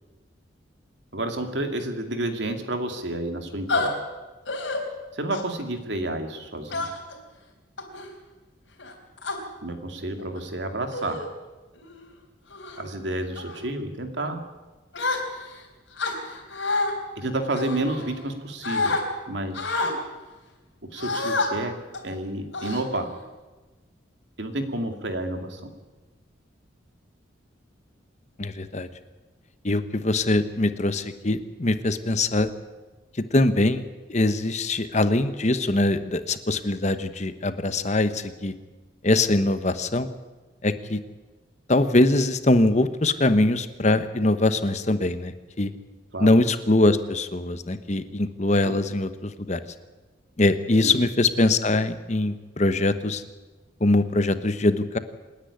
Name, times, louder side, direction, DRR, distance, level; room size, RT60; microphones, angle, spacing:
voice 1, 1.1-3.9 5.1-6.9 9.6-11.2 12.8-14.4 17.2-18.9 19.3-19.7 20.9-21.8 22.0-23.1 24.4-25.6 46.1-46.3 50.8-50.9, right 1 dB, 65° right, 5 dB, 2.5 m, -30 dB
sound 1, 3.7-3.9 4.5-4.8 5.3-5.6 6.7-7.2 7.8-8.1 8.8-9.4 10.2-10.4 10.9-11.3 11.8-12.0 12.5-12.8 13.4-13.6 14.9-15.6 16.0-16.9 17.6-18.3 18.6-19.0 19.5-19.9 21.0-21.5 21.9-22.1 22.5-23.2, left 3 dB, 70° left, 4.2 m, -28 dB
voice 2, 28.4-28.9 29.6-32.5 33.3-33.8 34.1-38.5 39.0-40.1 40.6-41.0 41.7-45.7 46.2-49.6 50.4-53.2 53.8-55.0, left 2 dB, 35° left, 11 dB, 1.0 m, -22 dB
27.0 x 10.5 x 9.9 m, 1.2 s
head